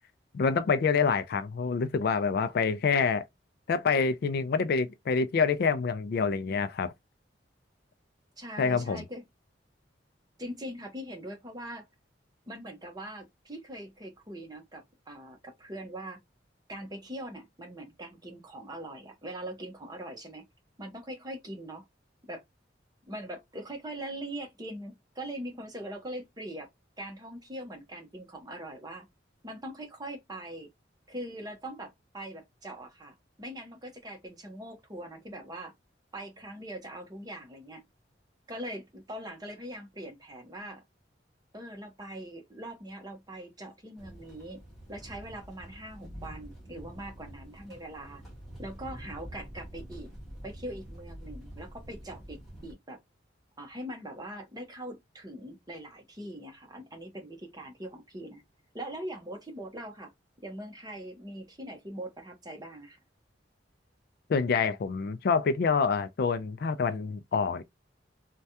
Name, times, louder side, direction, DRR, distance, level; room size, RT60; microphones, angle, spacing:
voice 1, 0.3-3.2 3.7-6.9 8.6-9.0 64.3-67.6, left 5 dB, 55° left, 0.3 m, -27 dB
voice 2, 8.4-9.2 10.4-11.9 12.5-16.2 16.7-20.5 20.8-21.9 22.2-22.4 23.1-26.7 27.0-29.1 29.4-30.7 31.1-35.7 36.1-37.9 38.5-40.8 41.5-44.6 44.9-48.2 48.6-50.1 50.4-53.0 53.6-58.4 58.7-60.1 60.4-63.0, right 1 dB, 20° right, 0.9 m, -42 dB
sound 1, 44.0-52.7, equal, ahead, 1.2 m, -46 dB
3.3 x 2.2 x 2.7 m
head